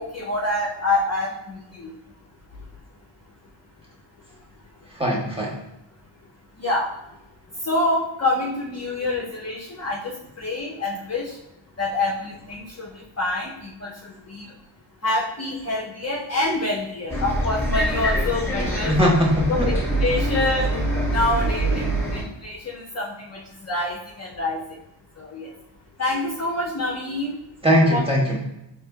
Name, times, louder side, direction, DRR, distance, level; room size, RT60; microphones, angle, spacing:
voice 1, 0.0-1.9 6.6-6.9 7.6-11.4 11.8-14.5 15.0-19.0 19.5-20.7 21.1-24.8 25.2-25.5 26.0-27.4 27.9-28.0, left 2 dB, 35° left, -3 dB, 0.7 m, -26 dB
voice 2, 4.9-5.6 18.9-19.7 27.6-28.4, equal, 10° right, -4 dB, 1.3 m, -20 dB
Bus, 17.1-22.2, right 1 dB, 5° left, 1.4 m, -24 dB
4.1 x 3.0 x 2.3 m, 0.86 s
cardioid pair, 50°, 49 cm